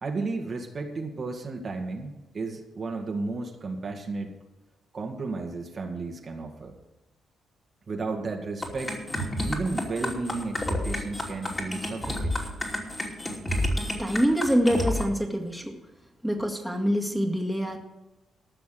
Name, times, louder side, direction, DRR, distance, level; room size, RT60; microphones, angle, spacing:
voice 1, 0.0-4.3 4.9-6.7 7.9-9.0 9.4-12.3, right 3 dB, 50° right, 2 dB, 2.0 m, -33 dB
sound 1, 8.6-15.0, left 1 dB, 25° left, 2.9 m, -30 dB
voice 2, 14.0-15.7 16.2-17.8, equal, ahead, 0 dB, 2.1 m, -25 dB
14.0 x 6.1 x 7.8 m, 1.1 s
cardioid pair, 80°, 0 cm